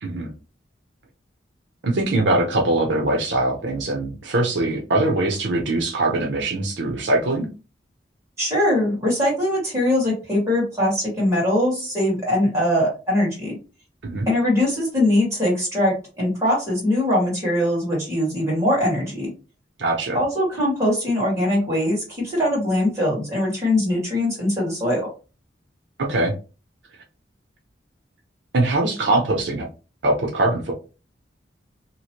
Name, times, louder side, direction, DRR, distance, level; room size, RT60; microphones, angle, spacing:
voice 1, 0.0-0.3 1.8-7.5 14.0-14.3 19.8-20.2 26.0-26.3 28.5-29.7 30.0-30.7, right 2 dB, 75° right, 1 dB, 0.7 m, -22 dB
voice 2, 8.4-13.6 14.3-19.3 20.1-25.1, left 1 dB, 15° right, -5 dB, 1.7 m, -21 dB
2.9 x 2.5 x 2.9 m, 0.33 s
head